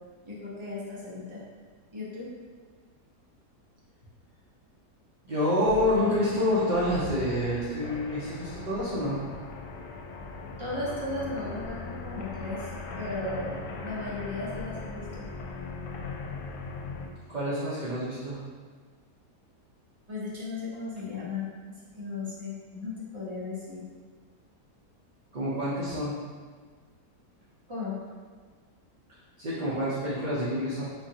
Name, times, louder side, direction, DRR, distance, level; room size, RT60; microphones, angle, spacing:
voice 1, 0.2-1.4 1.9-2.3 10.6-15.3 20.1-21.5 22.0-23.8 27.7-27.9, left 2 dB, 25° right, -8 dB, 0.7 m, -36 dB
voice 2, 5.2-9.2 17.3-18.4 25.3-26.2 29.4-30.8, left 1 dB, 65° right, -9 dB, 0.4 m, -27 dB
sound 1, 5.7-17.1, left 3 dB, 80° left, 1.2 m, -39 dB
5.1 x 2.5 x 2.8 m, 1.6 s
omnidirectional pair, 1.8 m